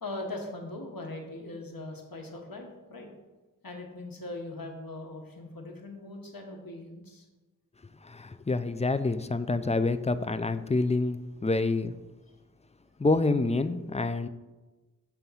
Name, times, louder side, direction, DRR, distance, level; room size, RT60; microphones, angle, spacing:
voice 1, 0.0-3.1 3.6-7.2, left 2 dB, 90° left, 2 dB, 1.1 m, -40 dB
voice 2, 8.0-11.9 13.0-14.3, left 3 dB, 20° left, 11 dB, 0.3 m, -27 dB
7.1 x 3.5 x 5.6 m, 1.2 s
wide cardioid pair, 40°, 34 cm